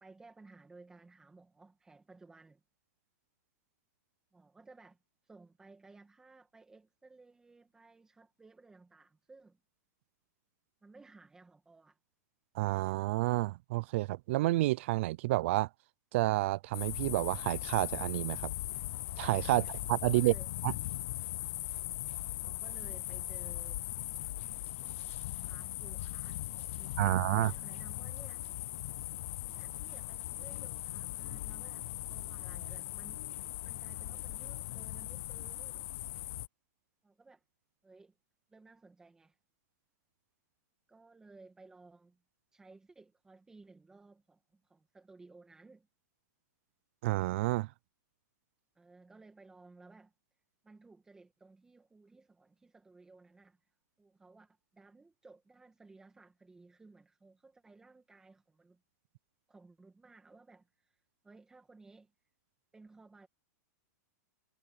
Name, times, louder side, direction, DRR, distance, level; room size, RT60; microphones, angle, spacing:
voice 1, 0.0-2.6 4.3-5.0 5.2-9.6 10.8-12.0 19.5-19.7 20.0-20.5 22.4-23.8 25.4-26.4 26.7-28.4 29.4-33.3 33.6-36.0 37.0-37.4 37.8-38.1 38.5-39.4 40.9-42.2 42.5-45.9 48.8-50.1 50.6-53.6 54.0-58.8 59.5-61.0 61.2-62.1 62.7-63.3, right 3 dB, 5° right, 2.0 m, -58 dB
voice 2, 12.6-15.7 16.1-18.5 19.2-20.3 20.6-20.7 27.0-27.5 47.0-47.7, right 19 dB, 45° right, 0.5 m, -30 dB
sound 1, 16.7-36.5, left 16 dB, 45° left, 0.4 m, -39 dB
supercardioid pair, 165°, 9 cm